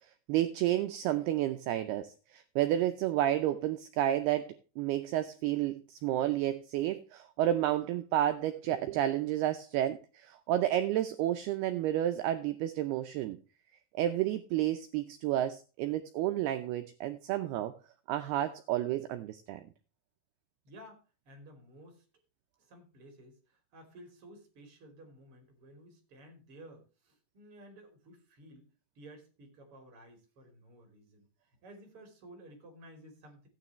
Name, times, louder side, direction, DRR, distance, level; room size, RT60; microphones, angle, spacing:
voice 1, 0.3-13.4 14.0-17.7 18.1-19.6, right 12 dB, 85° right, 8 dB, 2.2 m, -31 dB
voice 2, 20.6-22.0 22.6-28.7 28.9-31.3 31.6-33.5, right 1 dB, 35° right, 4 dB, 3.3 m, -54 dB
14.5 x 9.6 x 3.1 m, 0.33 s
omnidirectional pair, 5.4 m